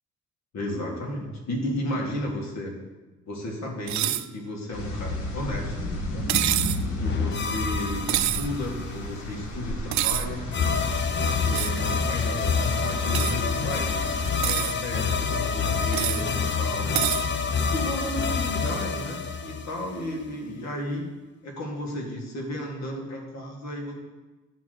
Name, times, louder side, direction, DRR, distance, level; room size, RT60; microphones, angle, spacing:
voice 1, 0.5-2.7 3.3-5.7 6.1-6.3 7.0-10.5 11.4-13.9 14.4-16.9 17.7-21.1 21.4-23.9, left 1 dB, 65° left, 0 dB, 2.2 m, -33 dB
sound 1, 3.9-4.3 6.3-6.8 8.1-8.5 9.9-10.3 11.5-11.8 13.1-13.3 14.2-14.7 15.9-16.2 16.9-17.2, right 14 dB, 65° right, 0.5 m, -26 dB
sound 2, 4.7-14.3, left 1 dB, 90° left, 1.6 m, -33 dB
sound 3, 7.0-8.9 10.5-20.3, left 5 dB, 40° left, 0.7 m, -27 dB
10.0 x 3.9 x 6.8 m, 1.2 s
cardioid pair, 90°, 30 cm